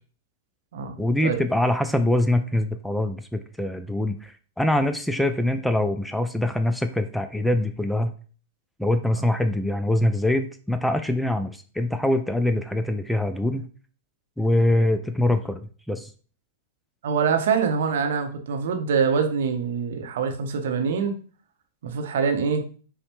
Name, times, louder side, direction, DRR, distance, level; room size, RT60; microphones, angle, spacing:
voice 1, 1.0-8.1 8.8-13.7 14.4-16.1, left 1 dB, 5° left, 9 dB, 0.3 m, -24 dB
voice 2, 17.0-21.2 21.8-22.6, right 6 dB, 65° right, 5 dB, 0.7 m, -24 dB
5.4 x 2.1 x 3.0 m, 0.40 s
hypercardioid pair, 105°, 0 cm